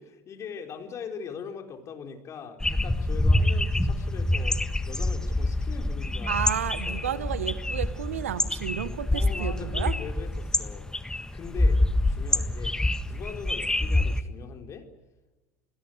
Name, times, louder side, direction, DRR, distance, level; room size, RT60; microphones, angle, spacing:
voice 1, 0.0-4.6 4.9-6.4 6.8-7.2 9.1-10.9 11.3-11.8 12.1-12.8 13.0-14.9, left 6 dB, 45° left, 5 dB, 4.4 m, -41 dB
sound 1, 2.6-14.2, left 1 dB, 10° left, 1.5 m, -26 dB
voice 2, 6.3-9.9, right 10 dB, 80° right, 15 dB, 1.3 m, -32 dB
28.5 x 20.5 x 8.1 m, 1.1 s
hypercardioid pair, 65°, 7 cm